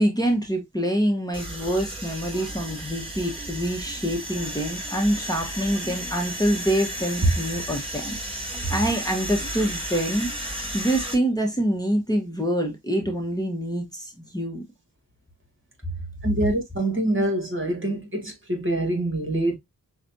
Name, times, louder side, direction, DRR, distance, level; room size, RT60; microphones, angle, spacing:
voice 1, 0.0-8.1 8.7-10.3 10.7-14.6 15.8-15.9, right 1 dB, 10° left, 1.2 m, -25 dB
sound 1, 1.3-11.1, right 1 dB, 15° right, 2.8 m, -33 dB
voice 2, 16.2-19.6, right 1 dB, 35° right, 2.0 m, -24 dB
5.9 x 2.5 x 2.7 m
cardioid pair, 45°, 36 cm